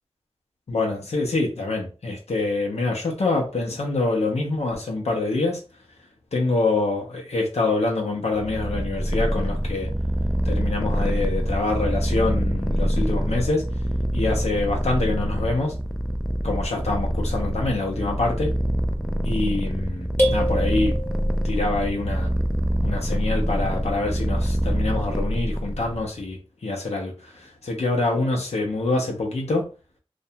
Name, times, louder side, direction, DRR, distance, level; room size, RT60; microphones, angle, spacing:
voice 1, 0.7-5.6 6.3-9.9 10.4-13.6 14.1-15.7 16.4-18.5 19.2-21.0 21.4-22.3 22.8-29.6, left 2 dB, 90° left, 0 dB, 0.6 m, -25 dB
Purr, 8.3-26.1, equal, ahead, 0.3 m, -25 dB
sound 1, 20.2-21.7, equal, 20° left, 0.9 m, -26 dB
2.5 x 2.1 x 2.7 m, 0.34 s
wide cardioid pair, 65°, 11 cm